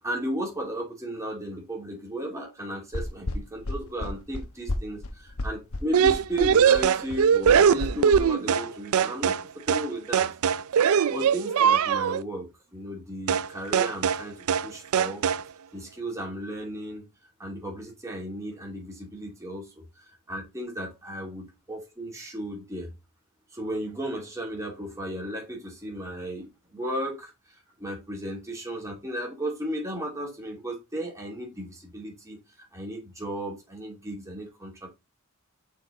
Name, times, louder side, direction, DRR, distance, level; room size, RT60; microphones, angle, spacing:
voice 1, 0.0-9.4 9.7-10.3 11.1-15.3 15.7-17.1 17.4-19.7 20.3-21.4 21.7-22.9 23.5-27.3 27.8-32.4 32.7-34.9, equal, 15° right, 2.7 m, -35 dB
sound 1, 2.9-8.2, left 2 dB, 85° left, 1.1 m, -32 dB
sound 2, 5.9-8.7 8.9-9.4 9.7-9.9 10.1-12.2 13.3-13.5 13.7-14.2 14.5-14.7 14.9-15.4, right 7 dB, 80° right, 0.4 m, -21 dB
6.5 x 4.3 x 4.2 m
head